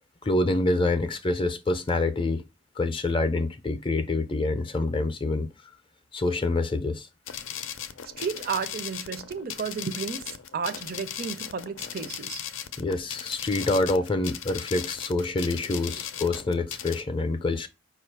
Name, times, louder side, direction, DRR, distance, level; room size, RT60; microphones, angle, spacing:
voice 1, 0.2-2.4 2.8-5.5 6.1-7.1 12.8-17.7, left 2 dB, 25° left, 0.5 m, -26 dB
sound 1, 7.3-17.0, left 9 dB, 85° left, 0.5 m, -37 dB
voice 2, 8.2-12.4, right 6 dB, 50° right, 0.5 m, -33 dB
5.0 x 2.4 x 4.5 m
head